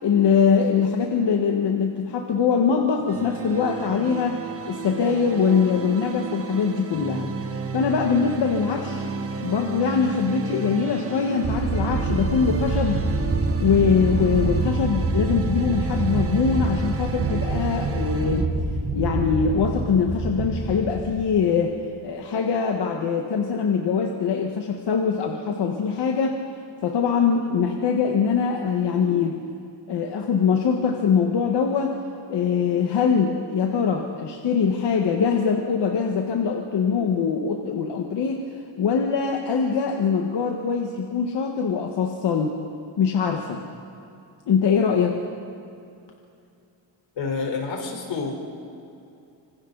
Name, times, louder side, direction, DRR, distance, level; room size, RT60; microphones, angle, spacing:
voice 1, 0.0-7.3 7.7-13.0 13.6-18.5 18.9-21.8 22.0-26.4 26.8-29.4 29.9-32.0 32.3-42.5 43.0-43.6 44.5-45.2, left 6 dB, 65° left, 1 dB, 1.6 m, -23 dB
sound 1, 3.1-18.4, right 6 dB, 30° right, 1.2 m, -34 dB
sound 2, 11.4-21.5, right 3 dB, 55° right, 4.8 m, -26 dB
voice 2, 47.2-48.4, left 4 dB, 90° left, 1 dB, 4.3 m, -28 dB
26.0 x 25.5 x 4.1 m, 2.6 s
wide cardioid pair, 160°, 44 cm